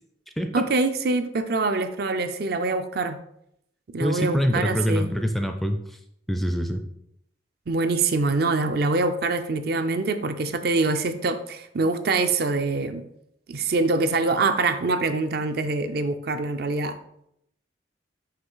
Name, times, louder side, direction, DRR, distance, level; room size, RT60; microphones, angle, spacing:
voice 1, 0.5-3.2 3.9-5.1 7.7-13.0 13.5-17.0, right 3 dB, 55° right, 9 dB, 0.5 m, -24 dB
voice 2, 4.0-6.0 6.3-6.8, equal, ahead, 5 dB, 0.4 m, -25 dB
5.7 x 3.1 x 5.5 m, 0.75 s
head